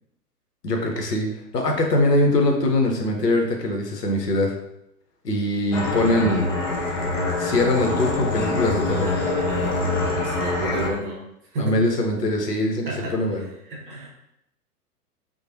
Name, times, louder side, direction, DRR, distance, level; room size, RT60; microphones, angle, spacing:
voice 1, 0.6-4.5 5.2-6.5 7.4-9.1 11.6-12.9 13.1-13.4, left 1 dB, 80° left, 2 dB, 0.7 m, -22 dB
sound 1, 5.7-10.9, left 2 dB, 50° left, 0.8 m, -25 dB
voice 2, 10.1-11.3 11.5-11.8 12.8-14.1, right 2 dB, 35° right, -3 dB, 0.7 m, -31 dB
3.0 x 2.1 x 2.6 m, 0.81 s
figure-of-eight pair, 110°, 48 cm